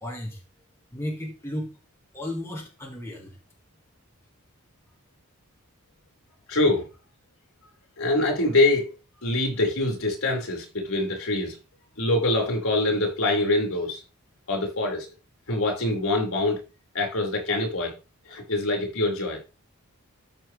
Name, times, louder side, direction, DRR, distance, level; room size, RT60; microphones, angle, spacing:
voice 1, 0.0-0.4 0.9-1.7 2.1-3.4, left 1 dB, 10° left, 1.7 m, -34 dB
voice 2, 6.5-6.9 8.0-11.6 12.0-14.0 14.5-15.1 15.5-16.6 16.9-17.9 18.3-19.4, left 2 dB, 70° left, 4.6 m, -24 dB
13.5 x 5.9 x 3.2 m
head